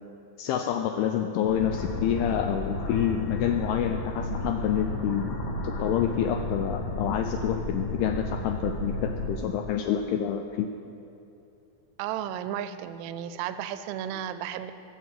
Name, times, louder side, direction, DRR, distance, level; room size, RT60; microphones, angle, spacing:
voice 1, 0.4-5.3 5.6-10.7, left 9 dB, 85° left, 6 dB, 2.3 m, -28 dB
sound 1, 1.5-9.3, left 2 dB, 65° left, 2.8 m, -32 dB
voice 2, 12.0-14.7, right 10 dB, 85° right, 12 dB, 2.6 m, -33 dB
15.5 x 6.0 x 7.4 m, 2.7 s
omnidirectional pair, 5.0 m